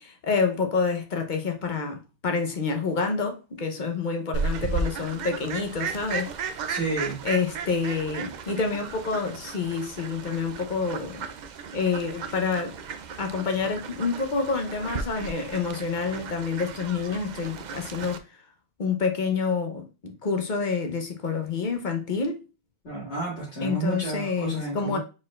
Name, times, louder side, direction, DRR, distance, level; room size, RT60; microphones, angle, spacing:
voice 1, 0.0-6.3 7.2-11.2 11.7-12.7 13.2-18.2 18.8-22.4 23.6-25.0, left 5 dB, 50° left, 1.0 m, -28 dB
Fowl, 4.3-18.2, right 5 dB, 55° right, 0.5 m, -35 dB
voice 2, 6.7-7.2 22.8-25.0, right 2 dB, 85° left, 2.1 m, -31 dB
4.9 x 4.1 x 2.4 m
omnidirectional pair, 1.1 m